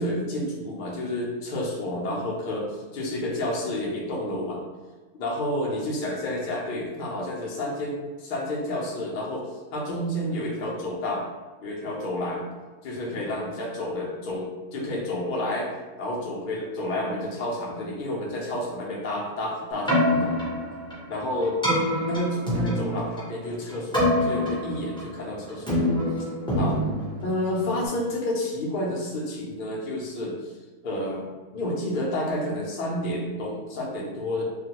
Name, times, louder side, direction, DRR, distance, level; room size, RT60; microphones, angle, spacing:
voice 1, 0.0-4.6 5.2-11.2 11.6-12.4 12.8-15.7 16.0-20.3 21.1-21.6 22.0-26.3 26.6-26.8 27.2-30.5 30.8-31.3 31.5-34.4, left 1 dB, 80° left, -3 dB, 0.4 m, -30 dB
Keyboard (musical), 19.7-27.9, left 1 dB, 5° left, 0.3 m, -26 dB
2.4 x 2.2 x 2.8 m, 1.3 s
omnidirectional pair, 1.6 m